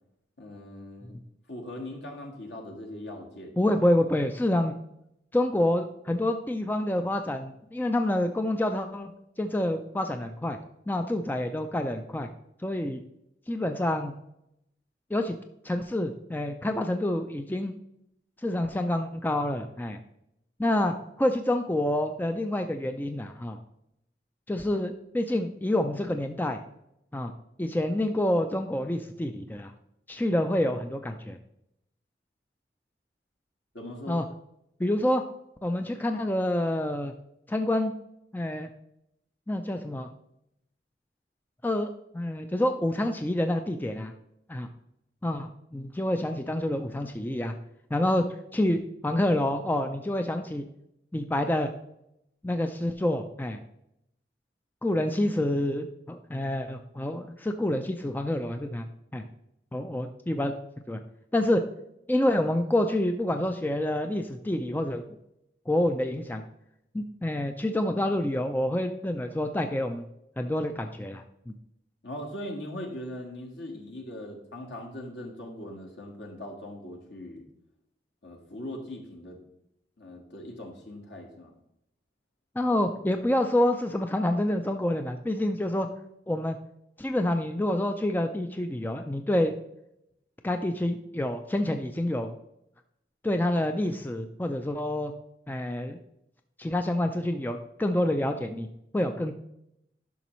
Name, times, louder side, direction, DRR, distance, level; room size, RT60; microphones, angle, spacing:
voice 1, 0.4-1.2 1.5-3.5 33.7-34.2 72.0-77.4 78.2-79.4 80.0-81.5, left 1 dB, 75° left, 1 dB, 1.6 m, -40 dB
voice 2, 3.6-4.7 5.3-9.1 9.4-10.6 10.9-12.3 12.6-13.0 13.5-14.1 15.1-15.4 15.6-17.7 18.4-20.0 20.6-23.6 24.5-26.6 27.1-27.3 27.6-29.7 30.1-31.4 34.1-34.2 34.8-35.2 35.6-37.1 37.5-37.9 38.3-38.7 39.5-40.1 41.6-44.1 44.5-44.7 45.2-47.5 47.9-48.2 48.5-50.6 51.1-51.7 52.4-53.6 54.8-58.8 59.1-59.2 59.7-60.5 60.9-61.0 61.3-61.6 62.1-65.0 65.7-66.4 66.9-70.1 70.4-71.5 82.6-85.9 86.3-86.6 87.0-89.5 90.4-92.3 93.2-95.1 95.5-96.0 96.6-98.7 98.9-99.3, left 1 dB, 10° left, 6 dB, 0.4 m, -27 dB
11.0 x 6.1 x 3.1 m, 0.80 s
head